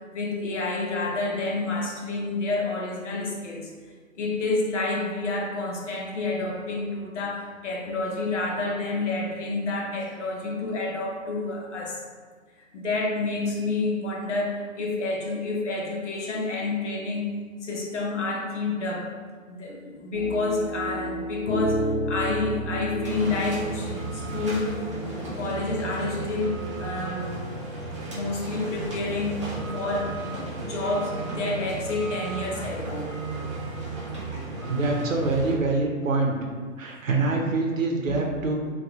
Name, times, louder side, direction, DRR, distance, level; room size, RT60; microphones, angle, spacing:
voice 1, 0.1-3.7 4.2-12.0 12.7-17.3 17.6-19.1 19.5-24.8 25.2-27.6 28.1-29.5 29.7-33.1 38.1-38.2, left 3 dB, 60° left, -1 dB, 0.8 m, -29 dB
sound 1, 20.1-25.9, left 1 dB, 40° left, 0.4 m, -31 dB
sound 2, 23.0-35.6, right 2 dB, 25° right, 0.4 m, -34 dB
voice 2, 34.6-36.4 36.8-38.5, right 3 dB, 70° right, 1 dB, 0.7 m, -25 dB
2.8 x 2.3 x 3.5 m, 1.5 s
figure-of-eight pair, 135°, 41 cm